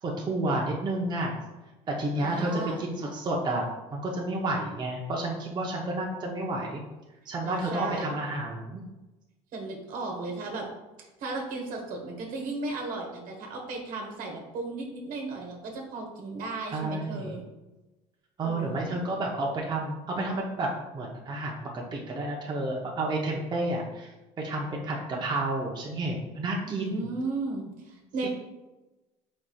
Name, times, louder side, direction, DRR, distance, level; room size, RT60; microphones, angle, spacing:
voice 1, 0.0-1.4 1.9-3.6 3.9-6.8 7.3-8.9 16.7-17.4 18.4-27.1 28.2-28.3, right 2 dB, 30° right, -1 dB, 0.7 m, -31 dB
voice 2, 2.2-2.8 7.5-8.2 9.5-10.7 11.0-17.4 18.4-19.0 26.6-28.3, right 3 dB, 60° right, 1 dB, 1.1 m, -35 dB
4.7 x 4.1 x 2.3 m, 1.1 s
supercardioid pair, 100°, 16 cm